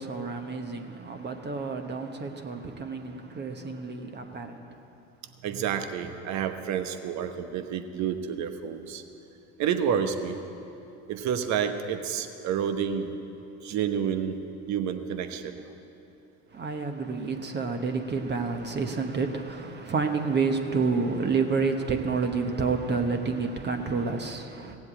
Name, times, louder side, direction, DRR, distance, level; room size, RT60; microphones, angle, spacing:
voice 1, 0.0-4.8 16.5-24.8, right 4 dB, 35° right, 1.1 m, -29 dB
voice 2, 5.4-9.0 9.6-10.4 11.1-13.1 13.6-14.4 14.7-15.6, right 8 dB, 60° right, 1.1 m, -29 dB
16.5 x 7.8 x 8.7 m
supercardioid pair, 90°, 32 cm